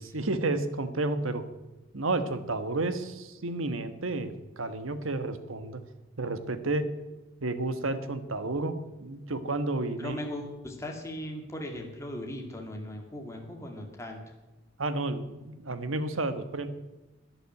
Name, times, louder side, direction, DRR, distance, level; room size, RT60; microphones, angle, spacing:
voice 1, 0.1-1.4 1.9-5.8 6.2-6.9 7.4-10.2 14.8-16.7, right 2 dB, 80° right, 11 dB, 1.3 m, -31 dB
voice 2, 10.0-14.2, left 1 dB, 15° left, 1 dB, 2.2 m, -38 dB
12.0 x 10.5 x 9.5 m, 1.1 s
head